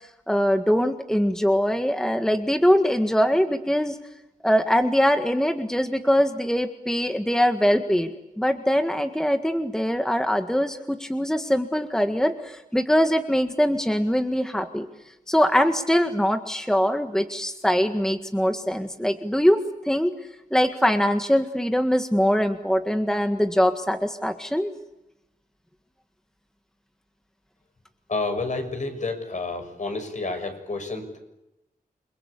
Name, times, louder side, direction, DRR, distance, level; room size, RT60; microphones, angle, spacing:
voice 1, 0.3-4.0 4.4-8.1 8.4-14.9 15.3-19.6 19.9-20.2 20.5-24.7, equal, 5° left, 7 dB, 1.8 m, -22 dB
voice 2, 28.1-31.2, left 3 dB, 50° left, 6 dB, 6.4 m, -30 dB
29.0 x 22.0 x 8.5 m, 0.93 s
cardioid pair, 70°, 16 cm